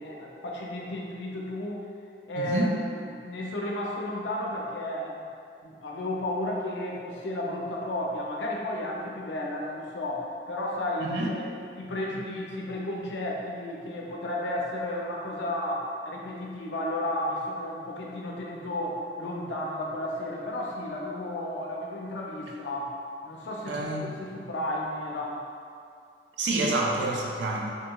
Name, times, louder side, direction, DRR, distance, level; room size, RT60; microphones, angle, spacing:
voice 1, 0.0-1.8 2.3-2.7 3.2-5.2 5.6-22.9 23.2-23.7 24.0-25.4, left 1 dB, 90° left, -2 dB, 0.5 m, -33 dB
voice 2, 2.4-2.7 11.0-11.3 23.7-24.1 26.4-27.7, right 2 dB, 90° right, -1 dB, 0.4 m, -28 dB
2.8 x 2.7 x 2.2 m, 2.3 s
head